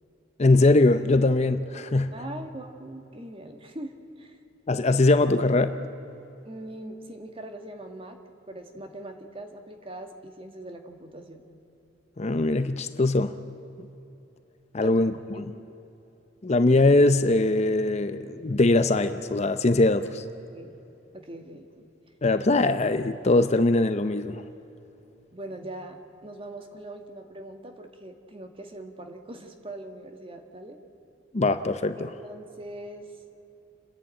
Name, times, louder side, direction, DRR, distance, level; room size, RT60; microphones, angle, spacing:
voice 1, 0.4-2.1 4.7-5.7 12.2-13.4 14.7-15.1 16.4-20.2 22.2-24.4 31.3-32.0, left 2 dB, 35° left, 11 dB, 0.6 m, -21 dB
voice 2, 2.1-3.9 4.2-4.4 6.4-8.2 8.5-11.4 14.8-14.9 15.3-15.4 20.5-20.7 21.1-21.9 25.3-30.8 32.0-33.1, right 1 dB, 30° right, 5 dB, 1.8 m, -41 dB
30.0 x 11.0 x 8.9 m, 2.9 s
head